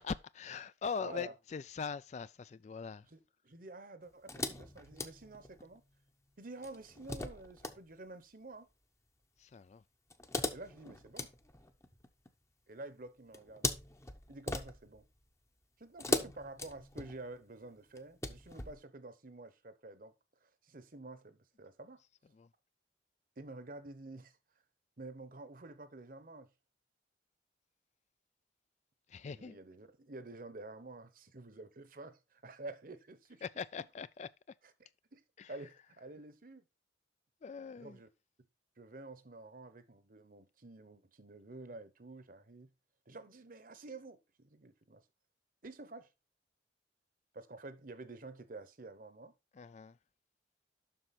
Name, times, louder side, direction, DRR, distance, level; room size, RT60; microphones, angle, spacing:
voice 1, 0.0-3.0 9.4-9.8 22.4-22.5 29.1-29.6 33.4-34.3 35.4-35.5 37.4-38.0 49.6-49.9, left 5 dB, 40° left, 0.3 m, -41 dB
voice 2, 1.0-1.3 3.0-5.8 6.4-8.7 10.5-11.3 12.7-13.7 14.3-15.1 15.8-20.1 20.4-22.0 23.4-24.4 25.0-26.5 29.2-33.4 33.8-33.9 34.6-35.2 35.5-36.6 37.8-38.1 38.8-42.7 43.1-45.0 45.6-46.1 47.3-49.3, right 2 dB, 50° right, 1.0 m, -50 dB
sound 1, 4.3-5.8 6.6-7.8 10.1-12.3 13.3-15.1 16.0-17.4 18.0-18.8, left 2 dB, 15° left, 0.8 m, -39 dB
7.7 x 6.1 x 4.2 m
head